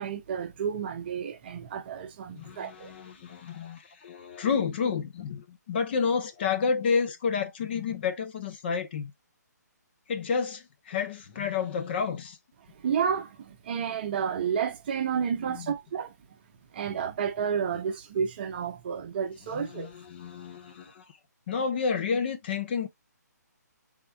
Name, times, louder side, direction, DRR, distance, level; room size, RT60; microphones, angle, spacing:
voice 1, 0.0-2.9 12.8-16.1 16.7-19.9, right 7 dB, 35° right, 0.6 m, -31 dB
voice 2, 2.3-9.1 10.1-12.4 15.4-15.7 19.5-21.0 21.5-22.9, left 5 dB, 35° left, 0.6 m, -30 dB
3.6 x 2.3 x 4.4 m
hypercardioid pair, 155°, 10 cm